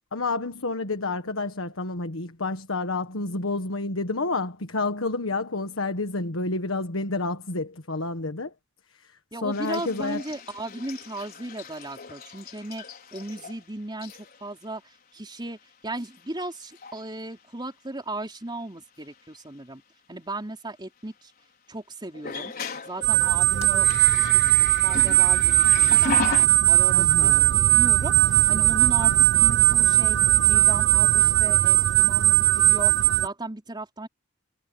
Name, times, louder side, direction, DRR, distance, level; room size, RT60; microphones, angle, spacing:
voice 1, 0.1-8.5 9.0-9.1 9.4-10.2 26.9-27.4, left 3 dB, 85° left, 1.5 m, -29 dB
voice 2, 9.3-12.8 13.1-15.6 15.8-19.8 20.1-21.3 21.7-22.5 22.8-24.4 24.8-25.6 26.0-26.4 26.7-30.2 30.5-34.1, right 2 dB, 20° right, 3.9 m, -36 dB
sound 1, 9.5-13.6 14.0-14.4 15.4-15.5 16.0-16.4 16.7-17.0 19.0-19.1 22.1-26.5, left 4 dB, 50° left, 5.2 m, -36 dB
sound 2, 23.0-33.3, right 17 dB, 60° right, 0.3 m, -19 dB
head